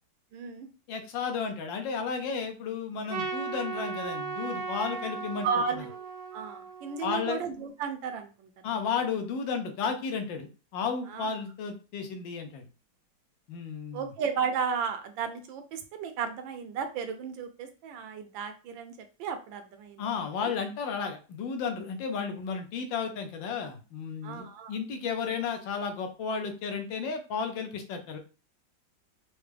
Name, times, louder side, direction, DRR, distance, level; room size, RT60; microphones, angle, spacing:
voice 1, 0.3-0.7 5.4-6.1 6.3-8.7 11.1-11.3 13.9-20.0 20.4-20.5 24.2-24.8, right 6 dB, 85° right, 7 dB, 1.4 m, -34 dB
voice 2, 0.9-5.5 7.0-7.4 8.6-12.7 13.5-14.1 20.0-28.2, left 6 dB, 80° left, 5 dB, 1.5 m, -33 dB
Trumpet, 3.1-7.5, right 5 dB, 65° right, 1.0 m, -37 dB
4.7 x 2.1 x 3.3 m, 0.33 s
omnidirectional pair, 2.0 m